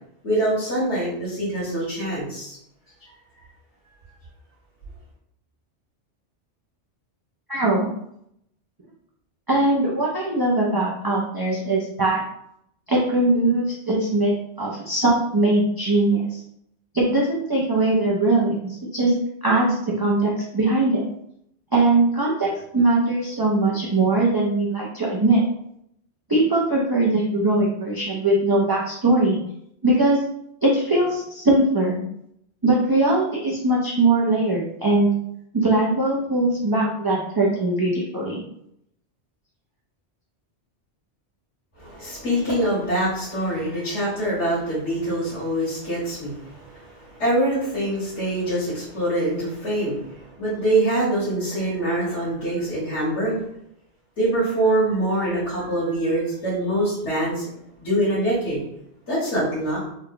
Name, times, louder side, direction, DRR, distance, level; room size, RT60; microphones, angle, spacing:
voice 1, 0.2-2.6 3.0-3.1 41.8-53.4 54.2-57.5 57.8-58.6 59.1-59.8, right 1 dB, 85° left, -10 dB, 1.8 m, -24 dB
voice 2, 7.5-7.9 9.5-12.2 12.9-14.3 14.6-16.4 16.9-19.1 19.4-21.0 21.7-25.4 26.3-29.4 29.8-30.2 30.6-32.0 32.6-35.1 35.5-38.4, right 2 dB, 30° right, -4 dB, 0.4 m, -21 dB
3.7 x 2.3 x 3.7 m, 0.74 s
omnidirectional pair, 1.1 m